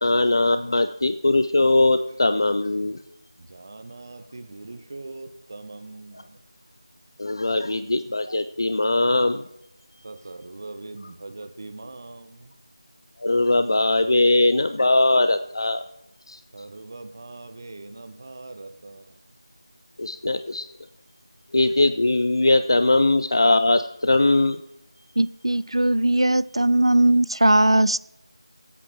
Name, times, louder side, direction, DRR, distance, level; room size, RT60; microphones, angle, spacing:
voice 1, 0.0-3.0 7.2-9.4 13.2-15.8 16.3-16.4 20.0-20.7 21.5-24.6, left 2 dB, 55° left, 0.5 m, -20 dB
voice 2, 3.4-6.4 10.0-12.5 16.5-19.1, right 2 dB, 40° right, 0.9 m, -41 dB
voice 3, 25.2-28.0, right 1 dB, 90° right, 0.4 m, -19 dB
18.5 x 8.6 x 3.5 m
figure-of-eight pair, 170°, 3 cm